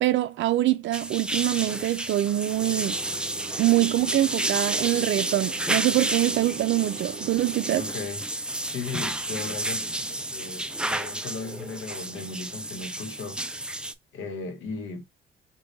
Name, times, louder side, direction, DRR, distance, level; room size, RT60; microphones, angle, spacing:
voice 1, 0.0-3.0 3.6-7.8, right 15 dB, 70° right, 0.4 m, -24 dB
sound 1, 0.9-13.9, right 1 dB, 5° right, 0.3 m, -31 dB
sound 2, 2.6-7.9, right 6 dB, 30° right, 1.1 m, -42 dB
voice 2, 7.8-13.4 14.1-15.0, left 4 dB, 80° left, 1.0 m, -37 dB
3.6 x 2.3 x 3.8 m
cardioid pair, 90°, 20 cm